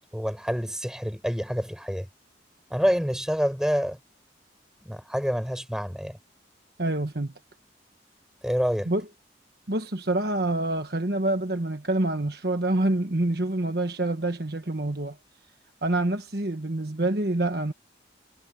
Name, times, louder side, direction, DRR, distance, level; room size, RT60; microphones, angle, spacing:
voice 1, 0.1-2.1 2.7-4.0 4.9-6.2 8.4-8.9, equal, 5° right, 7.2 m, -27 dB
voice 2, 6.8-7.3 8.9-9.0 9.7-15.2 15.8-17.7, right 2 dB, 55° right, 1.4 m, -26 dB
head